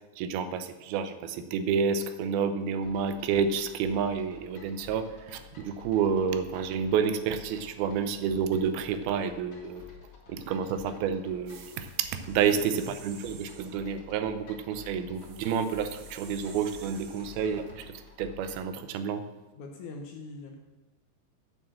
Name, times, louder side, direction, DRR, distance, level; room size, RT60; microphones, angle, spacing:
voice 1, 0.2-9.8 10.3-19.2, right 6 dB, 90° right, 10 dB, 2.7 m, -29 dB
sound 1, 2.8-18.7, left 6 dB, 45° left, 2.4 m, -51 dB
sound 2, 11.5-13.9 15.1-17.8, right 6 dB, 65° right, 2.2 m, -51 dB
voice 2, 12.5-13.0 19.6-20.6, left 3 dB, 70° left, 3 dB, 1.9 m, -43 dB
8.3 x 7.1 x 7.6 m, 1.2 s
omnidirectional pair, 4.3 m